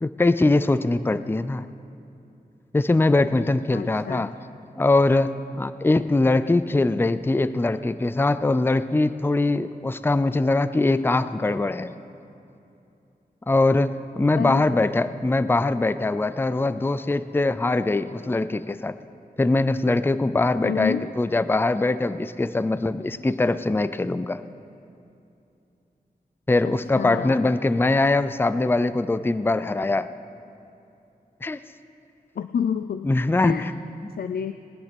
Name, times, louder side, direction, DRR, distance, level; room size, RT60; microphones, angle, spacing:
voice 1, 0.0-1.6 2.7-4.3 4.8-12.0 13.5-19.0 19.4-24.4 26.5-30.1 31.4-31.6 33.0-33.7 34.0-34.1, left 2 dB, 15° left, 14 dB, 0.4 m, -22 dB
voice 2, 3.7-4.3 14.4-14.6 20.6-21.1 26.9-27.4 32.4-33.1 33.4-33.7 34.2-34.5, left 7 dB, 80° left, 10 dB, 0.4 m, -28 dB
19.5 x 10.5 x 5.3 m, 2.7 s
wide cardioid pair, 70°, 16 cm